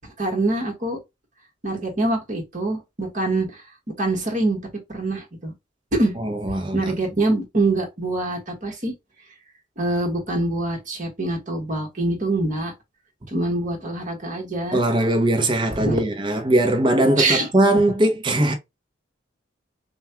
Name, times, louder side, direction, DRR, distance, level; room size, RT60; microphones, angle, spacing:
voice 1, 0.0-1.0 1.6-3.6 4.0-4.6 4.9-5.5 6.0-6.2 6.4-8.9 9.8-12.7 13.3-14.8 15.8-16.0 17.2-17.5, right 2 dB, 40° right, 1.5 m, -24 dB
voice 2, 6.2-6.9 14.7-18.5, right 1 dB, 25° right, 0.8 m, -20 dB
5.3 x 2.3 x 2.8 m
head